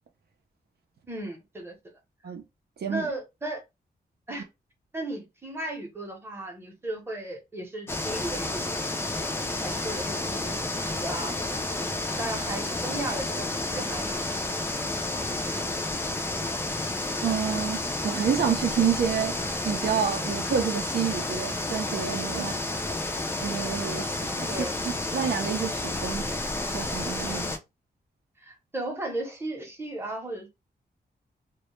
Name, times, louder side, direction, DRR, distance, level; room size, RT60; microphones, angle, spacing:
voice 1, 1.1-1.7 2.9-3.6 4.3-4.4 4.9-8.9 9.6-11.9 12.1-14.2 15.2-15.5 22.3-22.6 24.5-24.7 27.3-27.5 28.4-30.5, right 1 dB, 15° right, 0.7 m, -36 dB
sound 1, 7.9-27.6, left 2 dB, 15° left, 0.3 m, -31 dB
voice 2, 17.2-19.3 19.6-22.5 23.4-24.5 24.8-26.2 26.6-27.4, right 7 dB, 70° right, 0.5 m, -28 dB
2.1 x 2.0 x 3.0 m
wide cardioid pair, 115°, 17 cm